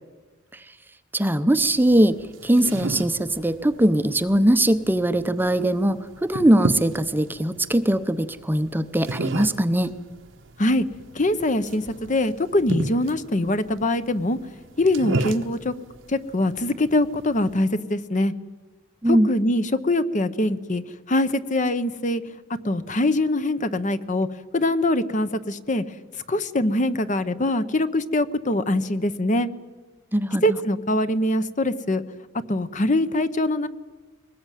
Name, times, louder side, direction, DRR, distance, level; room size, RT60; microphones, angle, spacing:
voice 1, 1.1-9.9 19.0-19.3 30.1-30.6, right 1 dB, 10° right, 11 dB, 0.7 m, -21 dB
sound 1, 1.8-17.6, right 2 dB, 70° right, 1.0 m, -34 dB
voice 2, 11.1-14.4 14.8-15.7 16.1-18.3 19.0-20.8 21.1-22.2 22.6-24.3 24.5-25.8 26.3-29.5 30.4-32.0 32.5-33.7, left 1 dB, 40° left, 12 dB, 0.9 m, -23 dB
22.5 x 19.5 x 9.2 m, 1.3 s
head